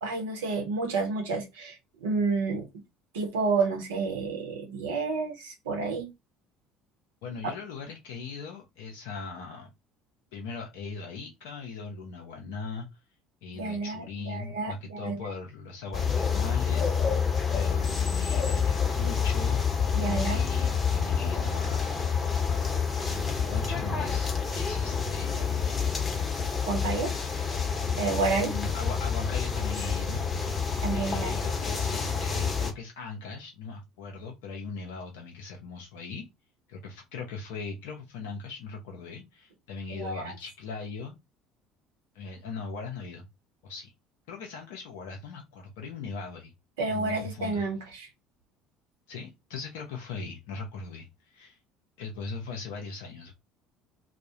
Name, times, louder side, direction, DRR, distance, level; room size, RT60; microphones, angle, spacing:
voice 1, 0.0-2.7 3.1-6.1 13.6-15.2 19.9-20.4 26.7-27.1 28.0-28.5 30.8-31.3 40.0-40.3 46.8-48.1, right 4 dB, 80° right, 0.8 m, -30 dB
voice 2, 7.2-9.7 10.3-13.0 13.4-16.9 17.5-19.7 20.0-22.0 23.1-25.8 28.4-30.5 30.9-36.2 36.7-41.2 42.1-43.3 43.6-43.9 44.3-46.5 46.9-47.6 49.1-51.6 52.0-53.3, left 4 dB, 70° left, 0.5 m, -39 dB
sound 1, 15.9-32.7, left 6 dB, 30° left, 0.7 m, -28 dB
2.3 x 2.1 x 2.7 m
hypercardioid pair, 65°, 0 cm